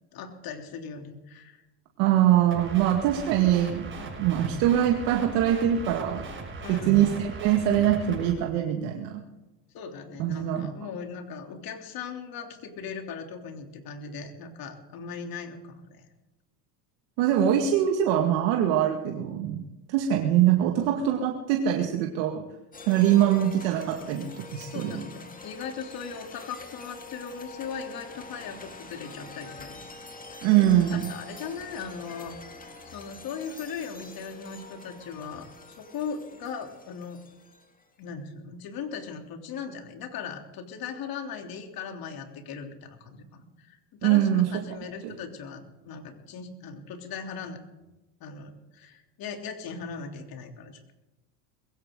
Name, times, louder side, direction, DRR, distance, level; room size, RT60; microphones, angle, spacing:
voice 1, 0.1-1.6 6.6-7.1 9.7-16.1 24.7-29.8 30.6-37.2 38.0-47.6 48.2-50.9, left 6 dB, 45° left, 4 dB, 3.4 m, -39 dB
voice 2, 2.0-6.3 6.7-9.2 10.2-10.7 17.2-19.6 19.9-22.4 22.9-25.0 30.4-31.1 44.0-44.5 45.0-45.1, right 11 dB, 60° right, 3 dB, 2.2 m, -23 dB
sound 1, 2.5-8.3, right 3 dB, 25° right, 7.0 m, -39 dB
sound 2, 22.7-37.8, left 3 dB, 15° left, 2.4 m, -45 dB
21.5 x 16.5 x 3.9 m, 1.0 s
supercardioid pair, 105°, 47 cm